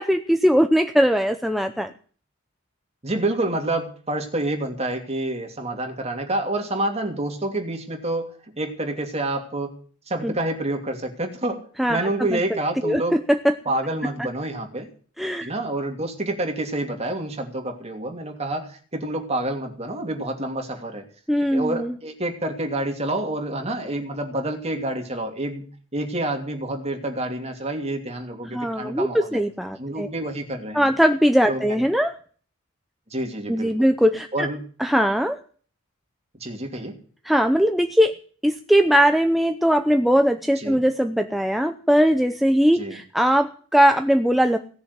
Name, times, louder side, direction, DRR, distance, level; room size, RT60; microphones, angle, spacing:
voice 1, 0.0-1.9 10.2-10.3 11.8-12.6 12.8-13.5 15.2-15.5 21.3-21.9 28.5-30.1 30.7-32.2 33.5-34.5 34.8-35.4 37.2-38.1 38.4-44.6, equal, ahead, 6 dB, 0.7 m, -20 dB
voice 2, 3.0-9.8 10.1-13.2 13.6-14.9 15.4-21.0 21.5-25.6 25.9-29.4 29.7-30.9 31.5-31.9 33.1-33.7 34.3-34.6 36.4-37.0 40.6-40.8 42.7-43.0, right 1 dB, 30° right, 3 dB, 2.8 m, -28 dB
17.5 x 7.0 x 9.6 m, 0.44 s
head